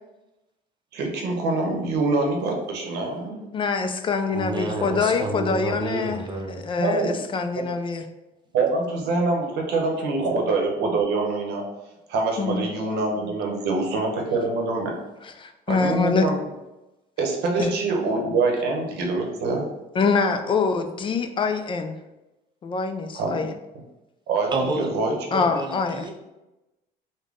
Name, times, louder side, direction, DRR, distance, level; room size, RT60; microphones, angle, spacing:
voice 1, 0.9-3.4 6.8-7.2 7.5-7.6 8.5-11.6 12.1-15.0 15.7-16.4 17.2-19.7 23.1-23.4 24.3-25.1, right 3 dB, 80° right, 1 dB, 0.8 m, -25 dB
voice 2, 3.5-6.2 6.5-8.0 12.4-12.7 15.2-16.3 17.6-17.7 20.0-21.9 22.6-23.5 25.3-26.1, left 4 dB, 30° left, 7 dB, 0.3 m, -25 dB
voice 3, 4.3-6.6 24.5-24.9 25.3-26.1, right 2 dB, 25° right, 1 dB, 0.6 m, -29 dB
3.5 x 2.1 x 3.7 m, 0.99 s
cardioid pair, 110°, 17 cm